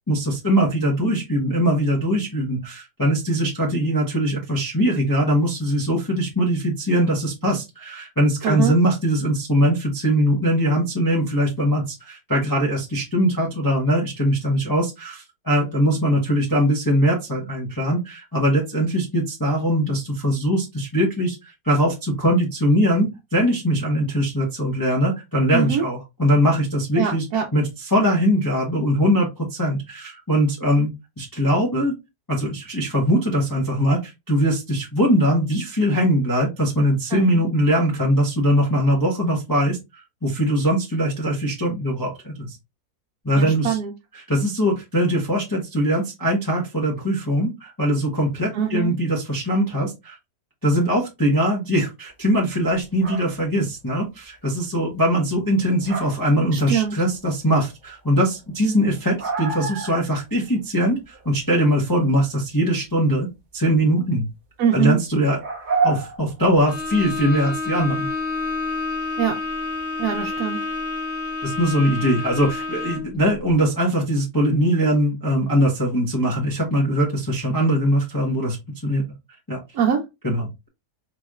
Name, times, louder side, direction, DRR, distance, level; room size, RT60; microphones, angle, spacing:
voice 1, 0.1-30.9 31.2-31.9 32.3-42.6 43.2-43.8 44.1-50.2 50.6-63.3 63.5-64.3 64.7-65.4 65.8-68.1 71.4-78.6 78.8-79.0 79.5-79.6 80.2-80.7, equal, 15° left, -3 dB, 0.7 m, -21 dB
voice 2, 8.4-8.7 25.5-25.8 27.0-27.5 37.1-37.4 43.4-43.9 48.5-49.0 56.5-56.9 64.6-65.0 69.2-69.4 70.0-70.6 79.7-80.1, right 8 dB, 70° right, 0 dB, 1.1 m, -23 dB
sound 1, 52.7-53.4 55.5-56.4 56.7-57.2 57.6-57.7 58.1-58.2 58.3-58.4 58.7-60.2 60.5-60.6 61.0-61.3 63.7-63.8 65.4-66.9 67.5-68.0 69.7-69.8 70.2-70.4, right 4 dB, 50° right, 0.5 m, -29 dB
Bowed string instrument, 66.7-73.2, left 3 dB, 55° left, 1.3 m, -29 dB
4.2 x 3.0 x 2.4 m, 0.22 s
omnidirectional pair, 1.7 m